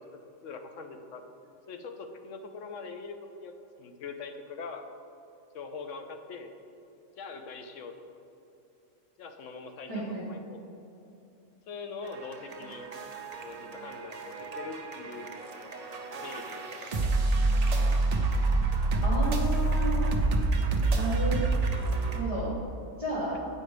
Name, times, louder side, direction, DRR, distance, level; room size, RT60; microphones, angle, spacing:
voice 1, 0.4-1.2 1.7-4.8 5.5-6.5 7.2-7.9 9.2-10.6 11.7-12.9 13.4-15.3 16.1-16.9 23.3-23.4, left 4 dB, 65° left, 6 dB, 1.0 m, -42 dB
voice 2, 9.9-10.3 19.0-20.0 20.9-21.4 22.1-22.5 23.0-23.4, right 2 dB, 25° left, -9 dB, 1.6 m, -32 dB
sound 1, 12.0-22.2, right 2 dB, 50° right, 0.5 m, -28 dB
8.7 x 4.9 x 4.9 m, 2.8 s
omnidirectional pair, 1.5 m